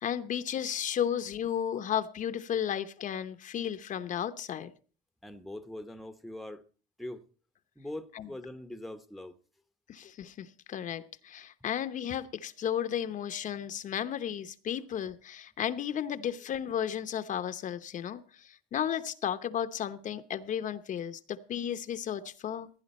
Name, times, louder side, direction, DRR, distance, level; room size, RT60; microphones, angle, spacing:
voice 1, 0.0-4.7 8.1-8.3 9.9-22.7, left 9 dB, 40° left, 0.8 m, -34 dB
voice 2, 5.2-6.6 7.0-7.2 7.8-9.4, left 1 dB, ahead, 0.8 m, -42 dB
16.5 x 10.5 x 4.2 m
cardioid pair, 145°, 20 cm